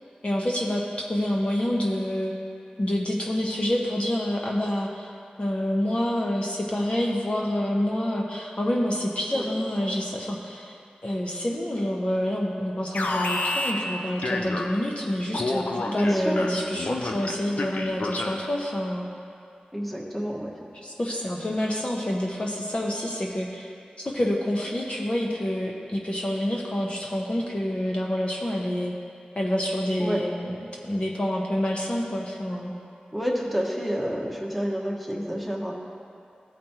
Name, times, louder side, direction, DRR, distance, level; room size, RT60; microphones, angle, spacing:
voice 1, 0.2-2.3 2.8-5.1 5.4-10.8 11.0-19.1 20.8-23.7 24.0-28.9 29.3-30.6 30.8-32.7, left 1 dB, 40° left, -2 dB, 0.9 m, -27 dB
Alarm, 12.9-15.0 15.3-18.6, left 2 dB, 70° left, 0.6 m, -30 dB
voice 2, 15.8-16.6 19.7-20.5 30.0-30.2 33.1-35.7, equal, 5° left, -2 dB, 1.2 m, -29 dB
14.5 x 5.1 x 2.9 m, 2.4 s
wide cardioid pair, 50°, 3 cm